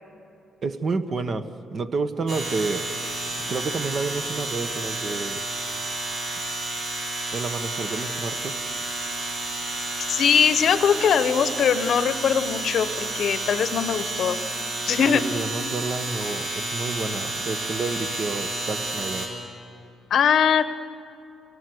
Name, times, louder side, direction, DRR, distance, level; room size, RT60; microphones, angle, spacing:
voice 1, 0.6-2.9 3.5-5.4 7.3-8.6 15.1-19.3, right 4 dB, 50° right, 8 dB, 1.4 m, -30 dB
sound 1, 2.3-19.3, right 2 dB, 80° right, 7.3 m, -31 dB
voice 2, 10.1-14.4 14.9-15.2 20.1-20.6, left 7 dB, 65° left, 11 dB, 0.9 m, -21 dB
28.5 x 18.0 x 8.0 m, 2.8 s
cardioid pair, 90°, 0 cm